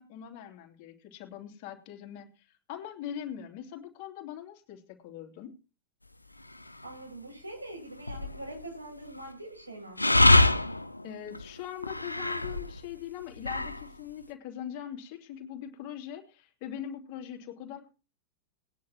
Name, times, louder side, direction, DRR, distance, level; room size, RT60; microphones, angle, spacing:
voice 1, 0.0-5.5 11.0-17.9, left 10 dB, 45° left, 4 dB, 2.9 m, -42 dB
sound 1, 6.5-6.9 8.0-8.8 10.0-12.8 13.2-13.9, left 2 dB, 85° left, 0.7 m, -25 dB
voice 2, 6.8-10.4, right 1 dB, 85° right, 1 dB, 7.1 m, -43 dB
20.0 x 10.5 x 3.0 m, 0.33 s
figure-of-eight pair, 90°, 0 cm